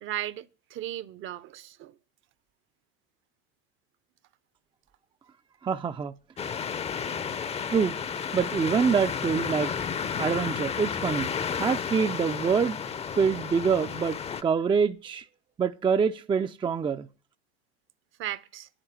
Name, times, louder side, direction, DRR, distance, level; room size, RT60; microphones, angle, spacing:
voice 1, 0.0-2.0 18.2-18.7, right 13 dB, 40° right, 0.8 m, -36 dB
voice 2, 5.6-6.1 7.7-8.0 8.3-9.7 10.2-11.3 11.6-12.8 13.1-15.2 15.6-17.1, right 6 dB, 15° right, 0.6 m, -25 dB
sound 1, 6.4-14.4, left 7 dB, 20° left, 0.7 m, -32 dB
10.5 x 9.0 x 6.9 m
supercardioid pair, 110°, 30 cm